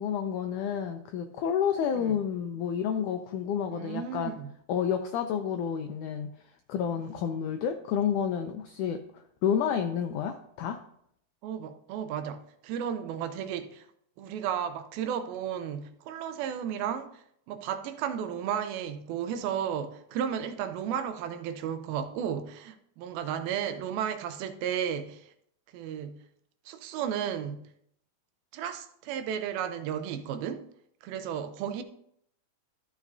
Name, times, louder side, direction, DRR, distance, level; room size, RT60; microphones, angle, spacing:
voice 1, 0.0-4.4 4.7-6.4 6.7-10.8, left 8 dB, 90° left, 1.7 m, -30 dB
voice 2, 3.7-4.5 11.4-13.9 14.2-17.1 17.5-25.3 25.7-26.2 26.7-27.7 28.5-30.7 31.0-31.8, right 8 dB, 85° right, 2.5 m, -33 dB
13.5 x 7.1 x 2.7 m
omnidirectional pair, 4.2 m